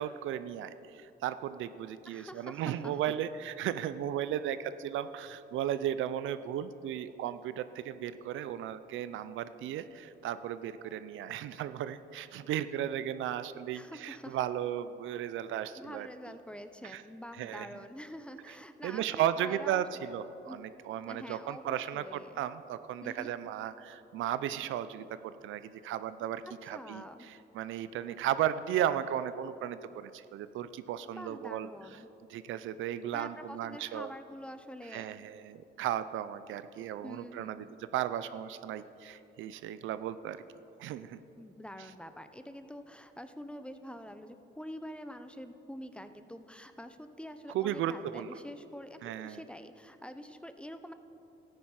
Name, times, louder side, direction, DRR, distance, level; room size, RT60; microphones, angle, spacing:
voice 1, 0.0-16.1 16.9-17.0 17.4-17.7 18.8-31.7 32.3-34.1 34.9-37.6 37.9-40.4 40.8-41.2 47.5-48.3 49.0-49.4, right 11 dB, 80° right, 13 dB, 0.5 m, -35 dB
voice 2, 2.1-3.1 13.7-14.4 15.8-20.1 20.5-20.6 21.1-22.4 23.0-23.3 26.6-27.3 31.1-32.1 33.1-35.2 37.0-37.8 41.4-50.9, equal, 5° left, 10 dB, 0.6 m, -46 dB
13.5 x 9.4 x 4.8 m, 2.9 s
cardioid pair, 90°, 20 cm